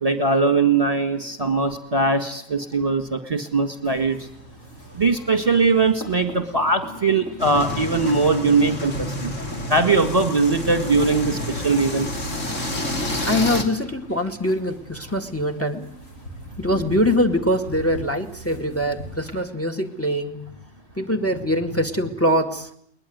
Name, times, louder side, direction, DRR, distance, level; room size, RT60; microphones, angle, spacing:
voice 1, 0.0-4.2 5.0-9.3 9.7-12.1, right 3 dB, 30° right, 9 dB, 1.9 m, -20 dB
sound 1, 3.8-19.4, equal, 85° left, 5.7 m, -40 dB
sound 2, 7.4-13.6, left 1 dB, 70° left, 3.5 m, -29 dB
voice 2, 13.2-15.9 16.6-20.4 21.0-22.7, equal, 10° left, 9 dB, 2.1 m, -23 dB
21.5 x 20.5 x 9.5 m, 0.65 s
omnidirectional pair, 1.3 m